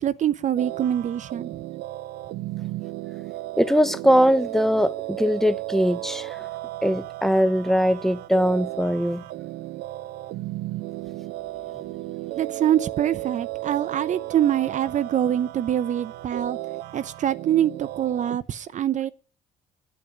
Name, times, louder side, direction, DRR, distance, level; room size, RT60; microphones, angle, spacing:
voice 1, 0.0-1.6 12.3-16.6 16.9-19.1, right 10 dB, 45° right, 0.7 m, -24 dB
sound 1, 0.6-18.4, right 17 dB, 80° right, 0.8 m, -35 dB
voice 2, 3.6-6.5 6.8-9.2, equal, ahead, 0.8 m, -21 dB
9.9 x 8.7 x 10.0 m
cardioid pair, 110°, 17 cm